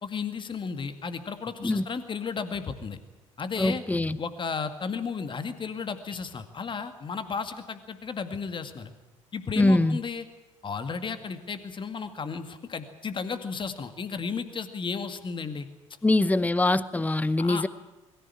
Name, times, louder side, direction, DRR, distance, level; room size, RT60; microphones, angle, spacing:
voice 1, 0.0-3.0 3.4-3.8 4.2-8.9 9.3-10.3 10.6-15.7 17.4-17.7, left 5 dB, 30° left, 9 dB, 2.1 m, -34 dB
voice 2, 3.6-4.2 9.6-10.0 16.0-17.7, left 2 dB, 10° left, 18 dB, 0.9 m, -23 dB
22.0 x 14.5 x 10.0 m, 1.1 s
figure-of-eight pair, 60°, 17 cm